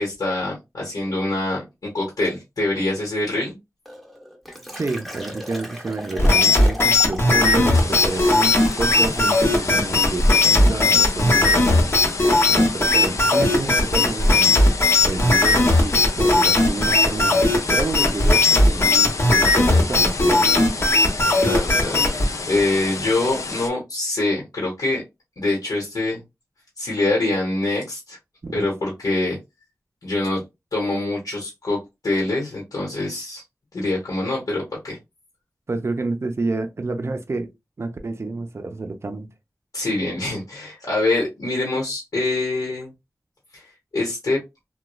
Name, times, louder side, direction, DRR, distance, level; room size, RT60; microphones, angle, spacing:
voice 1, 0.0-1.6 1.9-3.5 21.4-22.2 22.5-25.0 25.4-26.2 26.8-28.2 28.5-29.4 30.0-30.4 30.7-31.8 32.0-33.4 33.7-35.0 39.7-42.9 43.5-43.7 43.9-44.4, left 2 dB, 85° left, 1.0 m, -24 dB
Liquid, 3.9-9.4 9.7-10.0 10.3-10.7, equal, ahead, 0.8 m, -37 dB
voice 2, 4.7-12.0 12.5-14.7 15.0-20.9 28.4-28.6 35.7-37.5 37.8-39.3, right 3 dB, 50° right, 0.5 m, -29 dB
sound 1, 6.2-22.3, left 2 dB, 45° left, 0.9 m, -17 dB
sound 2, 7.7-23.7, left 3 dB, 60° left, 0.5 m, -31 dB
3.0 x 2.2 x 2.2 m
wide cardioid pair, 65°, 6 cm